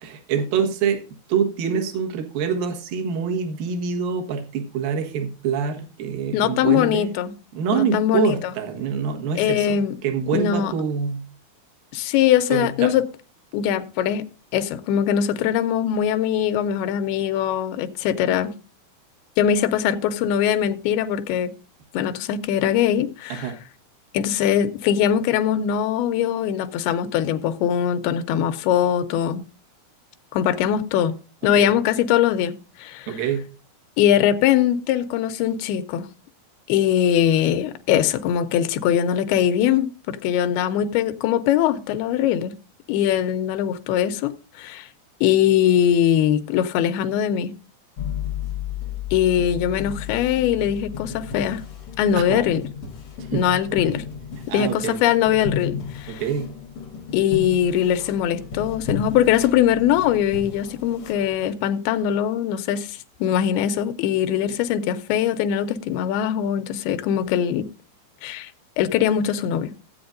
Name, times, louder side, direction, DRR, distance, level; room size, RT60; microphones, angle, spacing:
voice 1, 0.0-7.1 7.5-11.2 12.5-12.9 23.3-23.6 31.4-31.7 33.1-33.5 52.2-52.5 53.2-53.5 54.5-55.0 56.1-56.5 64.5-64.6, right 7 dB, 70° right, 3.0 m, -26 dB
voice 2, 6.3-7.3 7.7-8.4 9.4-9.9 10.3-10.7 11.9-13.0 13.5-14.3 14.5-18.5 19.4-21.5 21.9-23.5 24.1-29.4 30.3-31.1 31.4-32.5 32.8-33.1 34.0-36.1 36.7-42.5 42.9-44.9 45.2-47.5 49.1-51.6 52.0-52.6 53.3-54.0 54.5-56.2 57.1-67.7 68.2-68.5 68.8-69.7, left 10 dB, 85° left, 2.7 m, -21 dB
sound 1, 48.0-61.5, left 7 dB, 60° left, 1.5 m, -33 dB
15.5 x 8.7 x 2.6 m
omnidirectional pair, 4.4 m